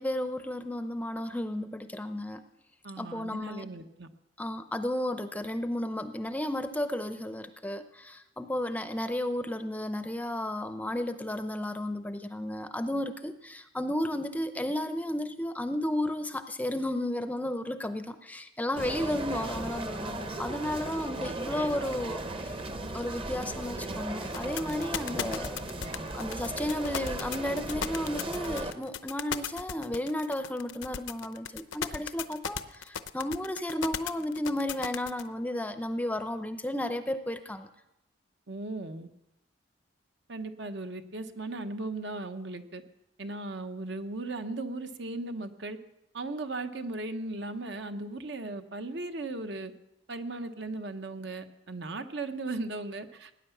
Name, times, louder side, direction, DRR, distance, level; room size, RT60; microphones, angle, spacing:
voice 1, 0.0-2.4 3.0-3.7 4.4-22.6 22.9-25.6 25.9-37.7, left 1 dB, 10° left, 9 dB, 0.6 m, -33 dB
voice 2, 2.8-4.1 38.5-39.1 40.3-42.8 43.2-45.8 46.1-49.7 50.1-53.3, right 2 dB, 60° right, 8 dB, 1.0 m, -37 dB
sound 1, 18.8-28.7, right 2 dB, 30° right, 0.9 m, -36 dB
sound 2, 24.3-35.2, left 8 dB, 75° left, 0.7 m, -35 dB
18.0 x 9.9 x 7.1 m, 0.89 s
head